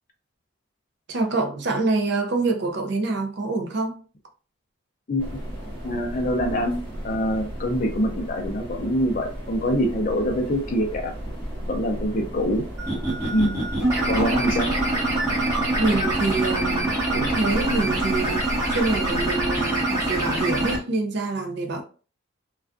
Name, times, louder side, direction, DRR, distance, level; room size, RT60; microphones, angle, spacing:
voice 1, 1.1-4.0 12.0-12.3 15.8-21.8, right 3 dB, 55° right, 0.5 m, -26 dB
voice 2, 5.1-5.4 5.8-6.8 7.0-11.1 11.7-12.7 13.3-13.6 14.0-14.7, equal, 40° left, 0.4 m, -24 dB
sound 1, 5.2-19.6, equal, 10° left, 1.0 m, -34 dB
sound 2, 12.8-20.8, right 2 dB, 15° right, 0.9 m, -25 dB
2.4 x 2.3 x 2.4 m
head